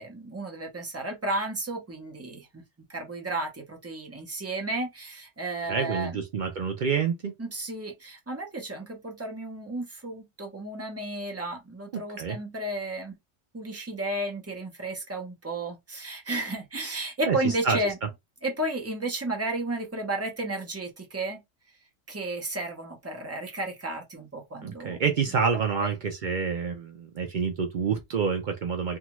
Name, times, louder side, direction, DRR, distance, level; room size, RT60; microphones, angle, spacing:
voice 1, 0.0-2.6 2.9-6.1 7.4-13.2 13.5-18.0 18.4-21.4 22.1-25.0 25.8-25.9, right 2 dB, 15° right, 0.6 m, -33 dB
voice 2, 5.7-7.3 11.9-12.4 17.2-17.8 24.6-29.0, right 6 dB, 75° right, 0.4 m, -28 dB
2.6 x 2.3 x 3.0 m
omnidirectional pair, 1.3 m